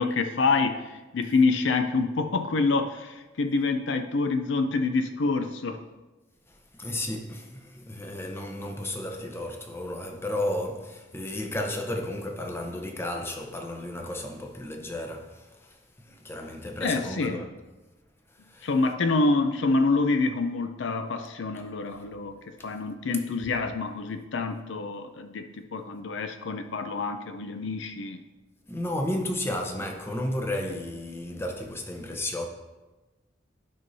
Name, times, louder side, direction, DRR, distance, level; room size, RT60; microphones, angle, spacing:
voice 1, 0.0-5.8 16.8-17.5 18.6-22.4 22.6-28.2, left 3 dB, 65° left, 0.5 m, -27 dB
voice 2, 6.5-17.5 18.4-18.7 22.6-22.7 28.7-32.4, left 1 dB, 10° left, 0.7 m, -33 dB
12.5 x 5.3 x 2.7 m
head